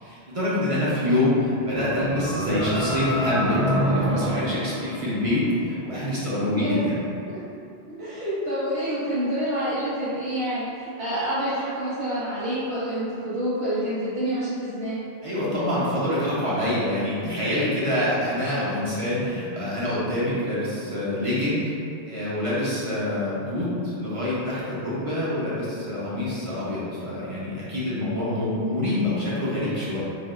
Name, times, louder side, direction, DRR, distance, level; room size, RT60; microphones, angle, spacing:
voice 1, 0.0-7.0 15.2-21.7 22.0-30.0, left 1 dB, 40° right, -9 dB, 0.6 m, -26 dB
sound 1, 1.5-5.7, equal, ahead, 0.4 m, -27 dB
voice 2, 6.5-6.9 7.9-15.0, equal, 70° right, -17 dB, 1.4 m, -27 dB
3.4 x 2.4 x 2.4 m, 2.5 s
omnidirectional pair, 1.1 m